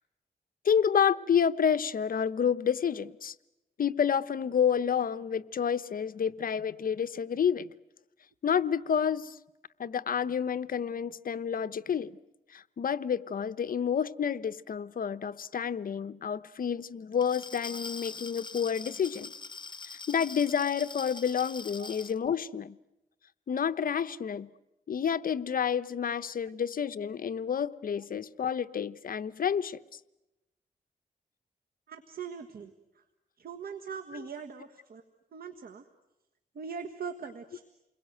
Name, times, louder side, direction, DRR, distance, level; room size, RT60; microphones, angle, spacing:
voice 1, 0.6-3.3 3.8-7.7 8.4-9.4 9.8-12.2 12.5-19.3 20.1-22.8 23.5-24.5 24.9-29.8, left 7 dB, 60° left, 0.9 m, -29 dB
Glass, 17.1-22.2, left 4 dB, 30° left, 0.9 m, -43 dB
voice 2, 31.9-33.0 33.4-35.0 35.3-35.8 36.5-37.6, right 6 dB, 70° right, 1.6 m, -41 dB
29.0 x 22.0 x 9.2 m
cardioid pair, 80°, 16 cm